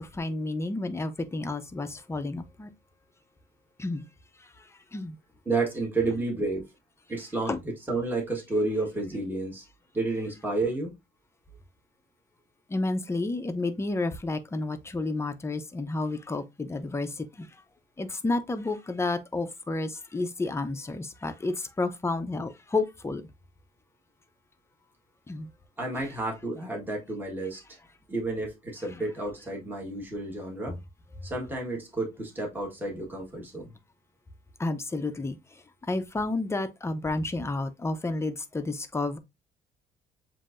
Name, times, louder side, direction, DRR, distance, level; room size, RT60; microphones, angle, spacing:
voice 1, 0.0-2.7 3.8-4.0 4.9-5.2 7.5-7.6 12.7-17.5 18.0-23.2 25.3-25.5 34.6-35.4 35.9-39.2, left 2 dB, 15° left, 0.7 m, -31 dB
voice 2, 5.4-6.7 7.1-9.6 9.9-10.9 25.8-27.6 28.1-30.8 31.2-33.7, right 2 dB, 10° right, 1.5 m, -31 dB
7.3 x 2.7 x 2.5 m
cardioid pair, 110°, 17 cm